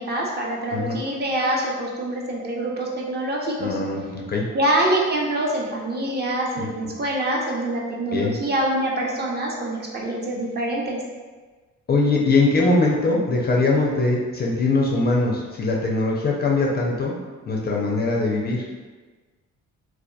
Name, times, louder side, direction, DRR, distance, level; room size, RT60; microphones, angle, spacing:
voice 1, 0.0-3.8 4.5-11.0, right 1 dB, 35° right, -3 dB, 0.5 m, -25 dB
voice 2, 3.6-4.5 6.6-6.7 8.1-8.3 11.9-17.1 17.5-18.6, left 3 dB, 35° left, -2 dB, 0.4 m, -21 dB
2.7 x 2.2 x 2.2 m, 1.3 s
cardioid pair, 90°, 30 cm